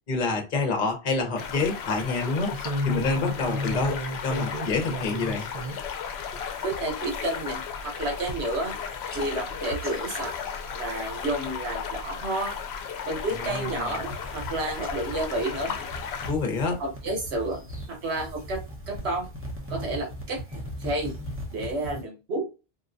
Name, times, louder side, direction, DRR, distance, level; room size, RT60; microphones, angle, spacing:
voice 1, 0.1-2.6 2.8-5.5 13.4-13.9 16.3-16.8, left 3 dB, 50° left, 0.9 m, -27 dB
sound 1, 1.4-16.3, left 7 dB, 80° left, 0.8 m, -35 dB
sound 2, 2.5-5.8 6.3-10.4 10.8-11.2 11.7-12.0 12.3-12.6 13.2-13.3 13.7-13.8 14.9-15.0 15.8-16.6 17.8-17.9 18.3-18.4 18.7-18.8, left 1 dB, 45° right, 0.5 m, -35 dB
sound 3, 5.0-5.8 6.2-6.6 6.9-7.3 7.8-7.9 8.1-8.8 9.1-11.7 11.9-12.4 13.0-22.0, equal, 15° right, 0.8 m, -40 dB
voice 2, 6.6-8.8 9.1-10.3 10.7-12.6 13.1-15.8 16.8-19.3 19.7-21.1 21.5-22.5, right 2 dB, 85° right, 1.1 m, -31 dB
3.8 x 2.2 x 2.5 m
omnidirectional pair, 1.1 m